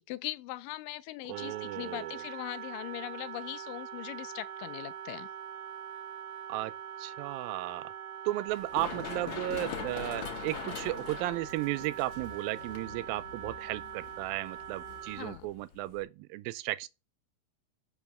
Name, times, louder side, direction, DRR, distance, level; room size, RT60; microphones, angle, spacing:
voice 1, 0.0-5.3 15.1-15.5, left 16 dB, 80° left, 2.1 m, -40 dB
Wind instrument woodwind instrument, 1.3-15.4, right 9 dB, 75° right, 2.1 m, -43 dB
voice 2, 1.3-2.2 6.5-6.7 7.0-7.9 8.3-16.9, right 17 dB, 90° right, 2.4 m, -35 dB
Run, 8.5-16.0, left 7 dB, 60° left, 2.4 m, -43 dB
7.1 x 5.7 x 4.9 m
omnidirectional pair, 4.1 m